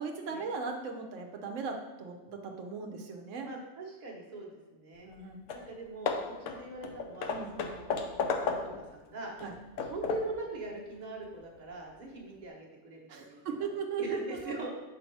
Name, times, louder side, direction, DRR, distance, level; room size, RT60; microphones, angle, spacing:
voice 1, 0.0-3.5 5.0-5.4 7.3-7.5 9.4-9.5 13.1-14.0, right 5 dB, 90° right, 3 dB, 1.0 m, -38 dB
voice 2, 3.4-5.1 5.5-8.0 8.4-9.6 9.8-13.7 14.0-14.7, right 2 dB, 40° right, -2 dB, 1.1 m, -41 dB
Hammer / Wood, 5.1-5.2 5.5-5.7 6.1-8.9 9.4-10.4, left 5 dB, 90° left, 1.0 m, -34 dB
5.1 x 4.1 x 4.5 m, 1.1 s
omnidirectional pair, 1.2 m